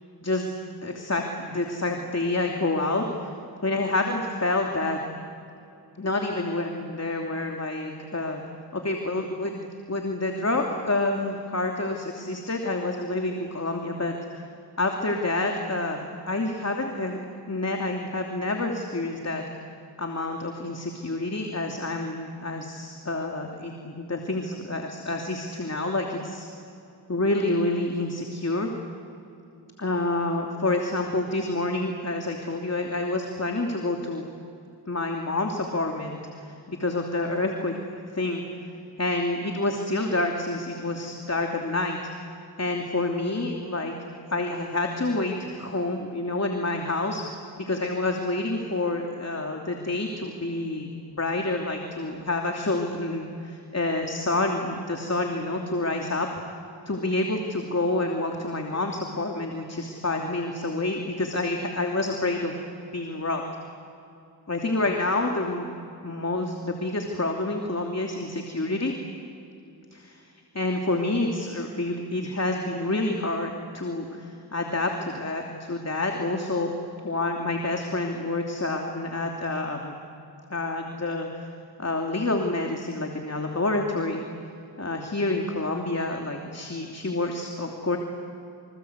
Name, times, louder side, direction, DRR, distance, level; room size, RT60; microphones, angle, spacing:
voice 1, 0.8-3.3 3.6-5.0 6.0-8.4 8.7-14.4 14.8-17.2 17.5-19.4 20.0-26.5 27.1-28.7 29.8-34.2 34.9-38.4 39.0-42.0 42.6-43.9 44.3-56.3 56.9-62.5 62.9-63.4 64.5-65.6 66.0-68.9 69.9-70.2 70.5-76.7 77.0-79.9 80.5-81.5 81.8-84.2 84.8-88.0, left 2 dB, 40° left, 2 dB, 2.9 m, -28 dB
28.0 x 26.0 x 8.2 m, 2.7 s
cardioid pair, 55°, 40 cm